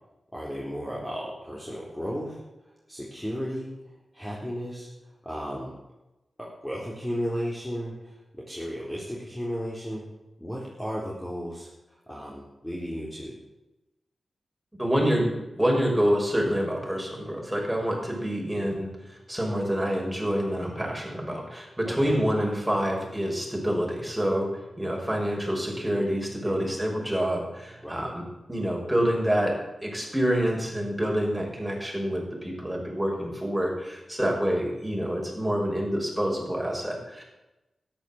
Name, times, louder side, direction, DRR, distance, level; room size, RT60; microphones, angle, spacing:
voice 1, 0.3-2.4 2.9-3.7 4.1-4.9 5.2-5.7 6.4-10.1 10.4-13.4 21.8-22.2 26.4-26.7 27.8-28.1, equal, 10° left, -5 dB, 4.1 m, -34 dB
voice 2, 14.8-24.5 24.8-29.5 29.8-37.2, equal, 5° right, -1 dB, 6.3 m, -27 dB
13.0 x 11.0 x 7.7 m, 0.98 s
cardioid pair, 60°, 0 cm